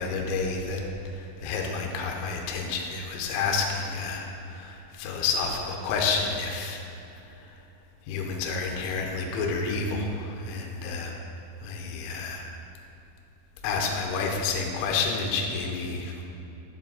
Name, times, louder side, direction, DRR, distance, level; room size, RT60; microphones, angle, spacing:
voice 1, 0.0-6.8 7.4-7.6 8.1-11.1 11.6-12.4 13.6-16.2, left 4 dB, 80° left, 1 dB, 3.1 m, -30 dB
7.7 x 7.3 x 3.9 m, 2.8 s
omnidirectional pair, 5.7 m